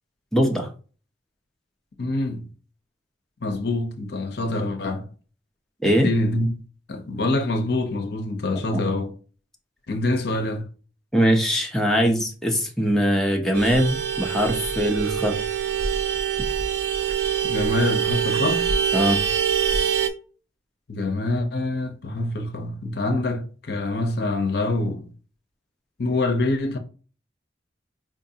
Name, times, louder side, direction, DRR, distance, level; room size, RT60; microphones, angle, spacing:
voice 1, 0.3-0.7 5.8-6.1 8.7-8.8 11.1-15.4 18.9-19.2, equal, 5° left, 0.5 m, -21 dB
voice 2, 2.0-2.5 3.4-5.1 5.8-6.5 6.9-9.1 9.9-10.7 17.4-18.7 20.9-25.1 26.0-26.8, left 2 dB, 55° left, 0.6 m, -25 dB
Vehicle horn car horn honking, 13.5-20.1, right 8 dB, 65° right, 0.5 m, -24 dB
4.6 x 2.5 x 2.7 m
head